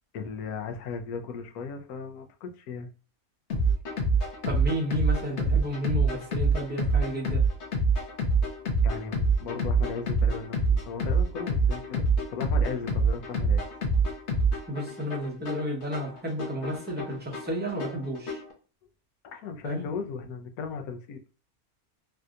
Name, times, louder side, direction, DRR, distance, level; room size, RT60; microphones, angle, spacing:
voice 1, 0.1-2.9 8.8-13.6 19.3-21.2, left 5 dB, 80° left, 4 dB, 1.1 m, -37 dB
sound 1, 3.5-18.5, right 3 dB, 55° left, 1.1 m, -26 dB
voice 2, 4.4-7.5 14.7-18.4 19.6-19.8, equal, 10° right, -2 dB, 0.6 m, -32 dB
3.3 x 2.7 x 2.4 m, 0.36 s
omnidirectional pair, 1.6 m